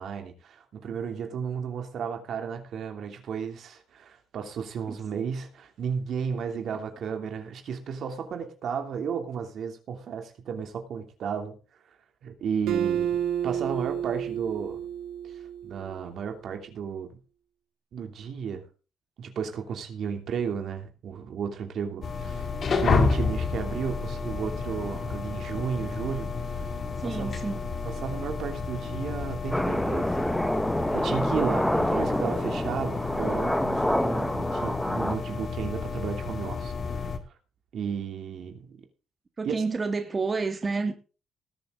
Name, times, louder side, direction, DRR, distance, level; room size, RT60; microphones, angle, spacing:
voice 1, 0.0-11.6 12.2-14.8 15.2-17.1 17.9-18.6 19.2-26.7 27.0-27.3 27.8-30.2 30.9-37.2 37.7-38.8 39.4-39.5, right 6 dB, 65° right, 2.9 m, -33 dB
Acoustic guitar, 12.7-16.1, right 9 dB, 85° right, 2.2 m, -30 dB
sound 1, 22.0-37.2, left 4 dB, 50° left, 2.4 m, -31 dB
voice 2, 27.0-27.7 39.4-40.9, right 4 dB, 30° right, 1.8 m, -29 dB
sound 2, 29.5-35.1, equal, 5° left, 1.1 m, -27 dB
19.5 x 7.7 x 3.8 m
cardioid pair, 90°, 0 cm